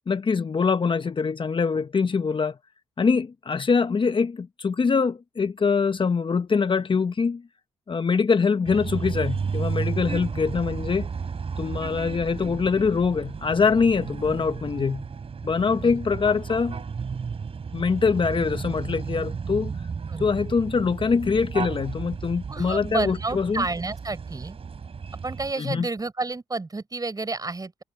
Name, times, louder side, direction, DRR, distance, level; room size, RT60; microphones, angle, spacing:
voice 1, 0.1-2.6 3.0-7.4 7.9-11.1 11.6-15.0 15.4-16.8 17.7-19.7 20.2-23.6 25.6-25.9, left 5 dB, 40° left, 1.2 m, -23 dB
sound 1, 8.6-25.5, right 5 dB, 50° right, 4.9 m, -33 dB
voice 2, 15.7-16.0 20.1-20.3 22.5-24.6 25.2-27.8, right 3 dB, 30° right, 5.9 m, -30 dB
supercardioid pair, 50°, 13 cm